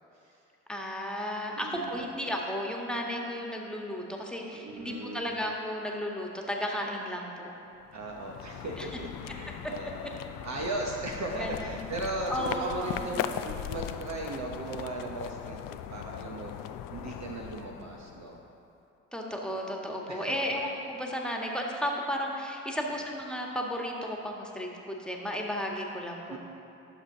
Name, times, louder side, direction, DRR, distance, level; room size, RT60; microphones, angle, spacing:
voice 1, 0.7-7.5 8.8-8.9 11.4-11.9 12.3-13.5 19.1-26.4, equal, ahead, -1 dB, 1.7 m, -34 dB
voice 2, 1.6-2.0 4.6-5.3 7.9-10.1 10.4-18.4 20.1-20.4 22.9-23.0 26.3-26.4, right 2 dB, 45° right, -1 dB, 1.1 m, -37 dB
sound 1, 7.8-18.5, left 10 dB, 60° left, 0.5 m, -39 dB
12.0 x 6.7 x 4.0 m, 2.7 s
hypercardioid pair, 45°, 38 cm